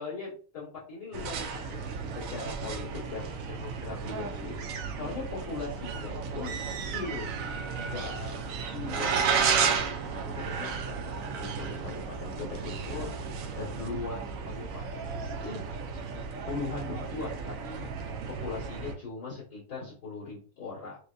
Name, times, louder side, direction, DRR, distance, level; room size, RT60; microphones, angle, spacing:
voice 1, 0.0-4.6 5.0-6.5 6.9-7.3 7.7-9.3 10.1-13.3 13.5-15.6 16.5-18.0 18.4-21.0, left 4 dB, 65° left, -10 dB, 2.7 m, -40 dB
sound 1, 1.1-19.0, right 5 dB, 65° right, 0.9 m, -33 dB
6.5 x 2.2 x 2.6 m, 0.41 s
omnidirectional pair, 1.7 m